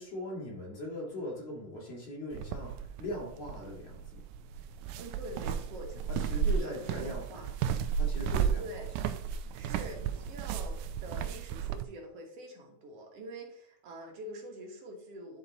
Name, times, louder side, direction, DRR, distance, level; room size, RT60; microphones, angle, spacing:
voice 1, 0.0-4.2 6.1-7.4 8.0-9.1, left 1 dB, 55° left, -2 dB, 3.0 m, -40 dB
sound 1, 2.3-11.8, right 7 dB, 90° right, 2.0 m, -34 dB
voice 2, 5.0-6.0 6.3-7.5 8.6-8.9 9.5-15.4, right 1 dB, 60° right, 1 dB, 2.1 m, -45 dB
11.0 x 4.2 x 3.9 m, 0.72 s
omnidirectional pair, 3.4 m